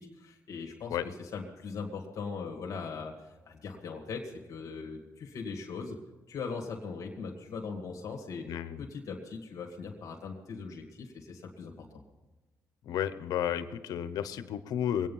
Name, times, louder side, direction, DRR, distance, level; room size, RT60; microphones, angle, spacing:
voice 1, 0.0-6.0 6.3-11.9, left 5 dB, 60° left, 0 dB, 2.0 m, -40 dB
voice 2, 8.5-8.8 12.8-15.1, left 10 dB, 80° left, 12 dB, 0.9 m, -32 dB
22.5 x 9.3 x 5.6 m, 1.1 s
cardioid pair, 85°, 6 cm